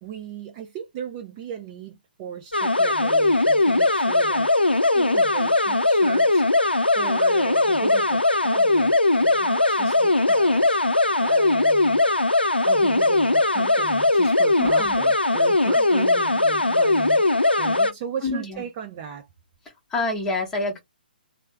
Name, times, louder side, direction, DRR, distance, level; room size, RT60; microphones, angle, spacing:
voice 1, 0.0-4.5 4.9-10.8 11.2-12.1 12.6-17.3 17.6-19.3, right 8 dB, 25° right, 0.5 m, -36 dB
sound 1, 2.5-17.9, left 2 dB, 85° left, 0.4 m, -20 dB
voice 2, 14.6-15.0 15.8-15.9 18.2-18.6 19.9-20.8, left 2 dB, 10° left, 0.9 m, -27 dB
3.2 x 2.1 x 3.2 m
figure-of-eight pair, 130°, 5 cm